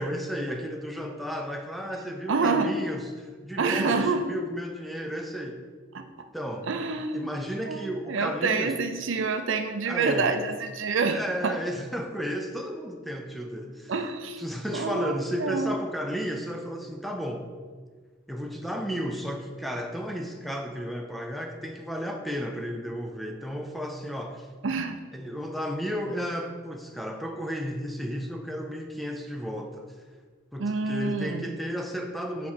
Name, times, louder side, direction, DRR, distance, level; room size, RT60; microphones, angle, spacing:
voice 1, 0.0-5.7 6.3-6.7 7.1-8.8 9.9-10.3 11.0-13.9 14.4-17.5 18.3-24.5 25.1-29.9 30.5-32.5, equal, ahead, 3 dB, 0.5 m, -33 dB
voice 2, 2.3-2.7 3.6-4.2 5.9-6.0 6.7-7.3 7.6-11.5 13.9-14.4 14.7-15.8 24.6-25.0 30.6-31.5, right 4 dB, 65° right, 7 dB, 0.5 m, -27 dB
7.0 x 4.2 x 4.4 m, 1.5 s
head